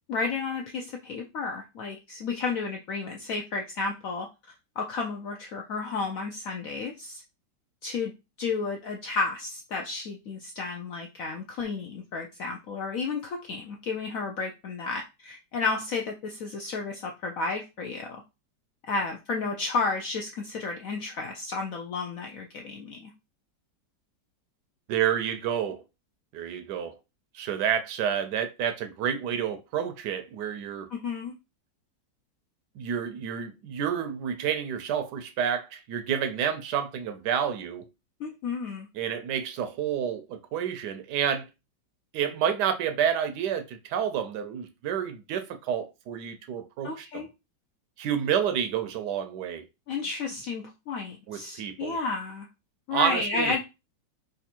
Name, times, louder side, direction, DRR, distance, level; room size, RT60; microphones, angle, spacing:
voice 1, 0.1-4.3 4.8-7.2 7.8-8.1 8.4-18.2 18.8-23.1 30.9-31.3 38.2-38.9 46.8-47.3 49.9-52.5 52.9-53.6, left 4 dB, 75° left, 0.7 m, -32 dB
voice 2, 24.9-25.8 26.3-27.0 27.3-30.9 32.8-37.9 38.9-41.4 42.1-47.2 48.0-49.6 51.3-52.0 52.9-53.6, right 8 dB, 75° right, 1.1 m, -29 dB
3.4 x 2.6 x 4.2 m
omnidirectional pair, 2.0 m